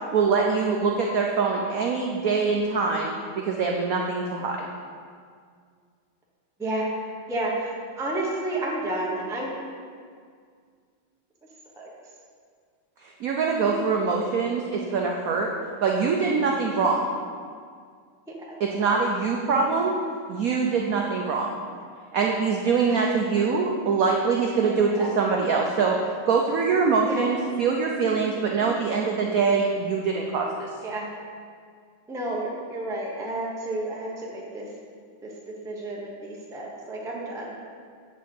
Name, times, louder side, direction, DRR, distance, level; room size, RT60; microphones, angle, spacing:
voice 1, 0.1-4.6 13.0-15.5 15.8-17.1 18.6-19.9 20.3-21.5 22.1-25.9 26.3-30.7, right 5 dB, 70° right, 0 dB, 0.8 m, -24 dB
voice 2, 7.3-7.7 8.0-9.6 11.8-11.9 18.5-18.6 24.9-25.1 27.1-27.3 28.5-28.7 30.8-31.1 32.1-34.7 35.2-37.6, right 1 dB, 5° right, -3 dB, 0.5 m, -31 dB
8.0 x 4.2 x 6.5 m, 2.1 s
omnidirectional pair, 2.2 m